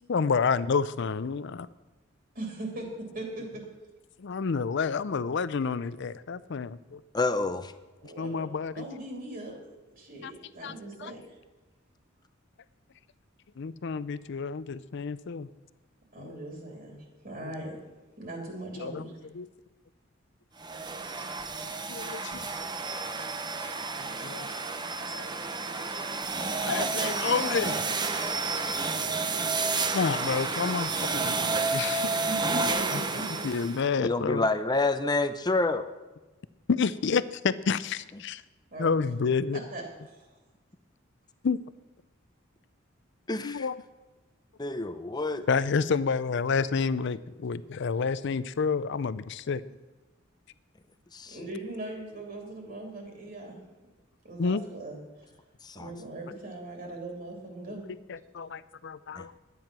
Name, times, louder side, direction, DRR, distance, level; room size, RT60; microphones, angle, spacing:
voice 1, 0.0-1.7 4.2-7.0 8.2-8.9 10.2-10.3 10.6-11.1 13.6-15.5 16.2-16.3 17.4-17.5 18.8-19.1 19.3-19.5 21.9-22.5 24.0-24.5 25.0-25.3 26.6-27.8 28.9-29.2 29.8-32.2 32.9-33.0 33.4-34.5 36.7-38.4 38.8-39.6 41.4-41.6 43.4-43.8 45.5-49.6 54.4-54.6 58.1-59.3, left 5 dB, 60° left, 16 dB, 0.5 m, -29 dB
voice 2, 2.3-3.6 8.0-8.5 8.7-9.5 10.0-11.4 16.1-17.7 18.2-19.1 32.2-33.4 38.7-38.9 39.7-39.8 40.1-40.2 51.3-53.6 54.2-55.0 55.8-57.9, right 2 dB, 50° right, 0 dB, 2.8 m, -39 dB
voice 3, 7.1-7.7 34.0-35.8 43.3-43.6 44.6-45.4 55.8-55.9 59.2-59.3, left 3 dB, 20° left, 11 dB, 0.6 m, -27 dB
sound 1, 20.6-33.8, right 3 dB, 20° right, 0.7 m, -30 dB
12.0 x 9.4 x 6.0 m, 1.2 s
head